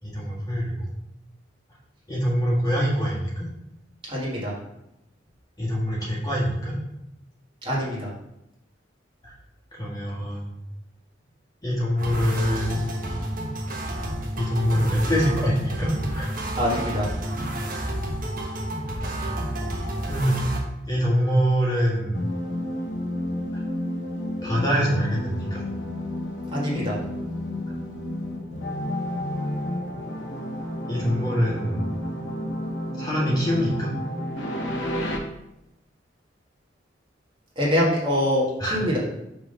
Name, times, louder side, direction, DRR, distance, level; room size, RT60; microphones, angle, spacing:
voice 1, 0.0-0.9 2.1-3.5 5.6-6.7 9.2-9.3 9.7-10.5 11.6-12.9 14.3-16.3 17.8-17.9 19.4-19.5 20.0-20.5 20.9-22.2 23.5-23.6 24.4-25.6 30.9-31.9 33.0-33.9 38.6-38.9, equal, 20° left, -6 dB, 1.6 m, -24 dB
voice 2, 4.1-4.5 7.6-8.1 16.6-17.1 26.5-27.0 37.5-39.0, equal, 30° right, -5 dB, 1.8 m, -24 dB
sound 1, 12.0-20.6, right 1 dB, 50° right, 1.2 m, -30 dB
sound 2, 22.1-35.2, left 1 dB, 85° left, 1.0 m, -31 dB
6.1 x 3.6 x 5.2 m, 0.86 s
head